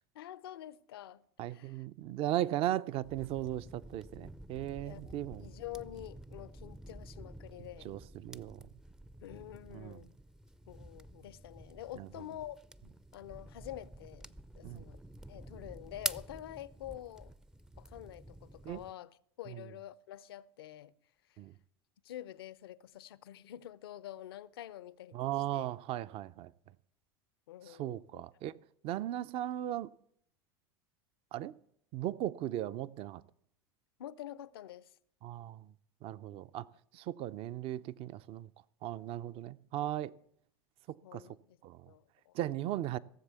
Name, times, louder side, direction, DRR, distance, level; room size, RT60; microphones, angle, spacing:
voice 1, 0.1-1.9 4.8-7.9 9.2-10.1 10.7-12.6 13.1-15.0 15.3-17.3 17.8-20.9 21.3-21.4 22.0-25.7 27.5-28.2 34.0-34.9 41.0-41.6 41.9-42.3, left 13 dB, 75° left, 0.6 m, -47 dB
voice 2, 1.4-5.4 7.8-8.6 9.7-10.0 12.0-12.1 14.6-14.8 18.7-18.8 21.4-21.5 25.1-26.5 27.8-28.5 28.8-29.9 31.3-31.5 31.9-33.2 35.2-35.7 36.0-36.7 36.9-38.5 38.8-40.1 41.1-41.2 41.6-41.8 42.3-43.0, right 13 dB, 50° right, 0.6 m, -37 dB
sound 1, 3.0-18.9, right 1 dB, 5° right, 0.5 m, -48 dB
17.0 x 7.4 x 6.9 m
hypercardioid pair, 80°, 13 cm